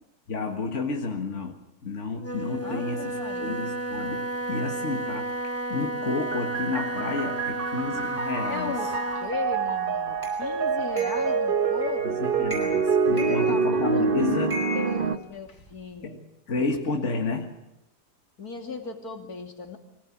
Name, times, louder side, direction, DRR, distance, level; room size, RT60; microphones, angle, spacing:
voice 1, 0.3-8.7 12.0-14.7 16.0-17.6, left 3 dB, 45° left, 2 dB, 2.0 m, -31 dB
Wind instrument woodwind instrument, 2.2-9.4, right 1 dB, 10° left, 1.0 m, -32 dB
voice 2, 2.6-3.6 8.4-12.2 13.1-14.4 14.7-16.2 18.4-19.8, left 4 dB, 65° left, 4 dB, 3.1 m, -36 dB
sound 1, 6.3-15.2, right 5 dB, 40° right, 1.0 m, -26 dB
sound 2, 10.2-10.4 11.0-11.3 11.8-12.1 12.4-12.9 13.2-14.0 14.5-15.7, left 1 dB, 10° right, 7.1 m, -37 dB
24.5 x 18.0 x 8.6 m, 0.87 s
omnidirectional pair, 1.7 m